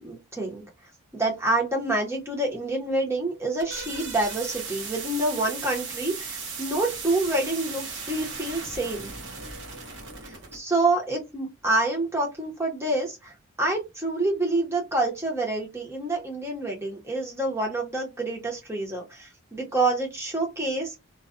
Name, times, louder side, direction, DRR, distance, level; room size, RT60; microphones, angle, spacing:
voice 1, 0.0-0.6 1.1-9.1 10.2-21.0, right 2 dB, 10° right, 0.8 m, -27 dB
sound 1, 3.3-10.6, right 5 dB, 55° right, 0.9 m, -37 dB
2.3 x 2.3 x 2.4 m
head